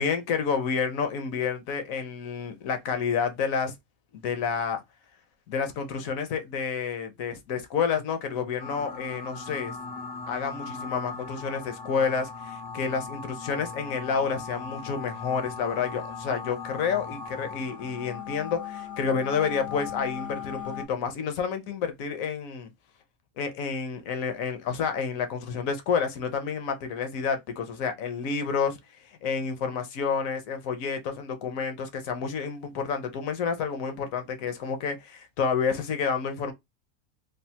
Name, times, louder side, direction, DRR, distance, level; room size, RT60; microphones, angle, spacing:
voice 1, 0.0-3.7 4.1-4.8 5.5-9.8 10.3-22.7 23.4-36.5, left 6 dB, 65° left, 1.0 m, -29 dB
sound 1, 8.6-20.8, left 6 dB, 90° left, 1.4 m, -38 dB
3.3 x 2.4 x 2.7 m
omnidirectional pair, 1.6 m